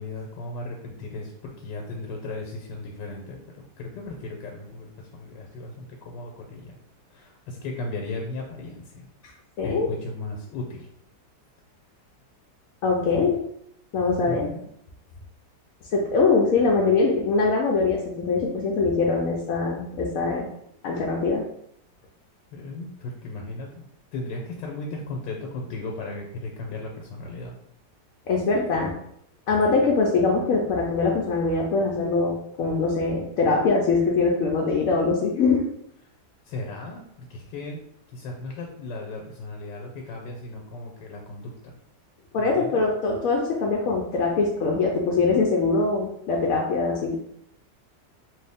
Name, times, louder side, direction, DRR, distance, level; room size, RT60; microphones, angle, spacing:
voice 1, 0.0-3.4 3.8-6.8 7.1-9.1 9.6-10.9 13.1-13.3 14.2-14.6 22.5-23.8 24.1-27.5 36.4-37.8 38.1-41.7 42.4-42.8, left 2 dB, 90° left, 1 dB, 1.3 m, -36 dB
voice 2, 9.6-9.9 12.8-13.4 13.9-14.5 15.9-20.5 20.8-21.4 28.3-28.9 29.5-35.6 42.3-47.2, left 4 dB, 70° left, -1 dB, 0.8 m, -22 dB
3.1 x 2.6 x 3.4 m, 0.73 s
omnidirectional pair, 1.9 m